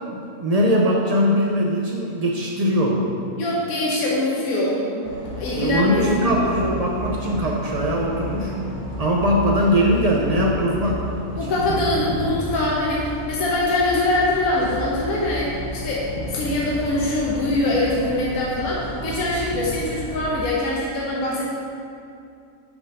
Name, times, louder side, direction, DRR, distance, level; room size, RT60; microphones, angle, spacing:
voice 1, 0.1-3.1 5.5-8.5 9.0-11.0 11.3-11.6, equal, 80° right, -3 dB, 0.3 m, -21 dB
voice 2, 3.4-6.1 6.4-6.7 11.4-21.5, left 1 dB, 70° left, -5 dB, 1.4 m, -23 dB
sound 1, 5.0-20.3, left 1 dB, 90° left, 1.5 m, -32 dB
6.6 x 4.5 x 5.4 m, 2.5 s
omnidirectional pair, 1.6 m